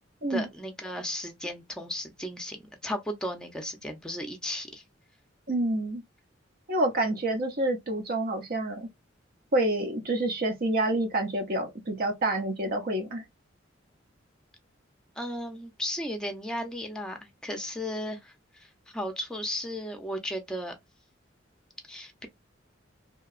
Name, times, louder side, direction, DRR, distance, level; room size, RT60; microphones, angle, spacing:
voice 1, 0.3-4.8 15.2-20.8 21.9-22.3, equal, 5° left, 0.6 m, -35 dB
voice 2, 5.5-6.0 6.7-8.9 9.5-13.2, right 1 dB, 50° right, 0.6 m, -28 dB
2.8 x 2.3 x 2.3 m
head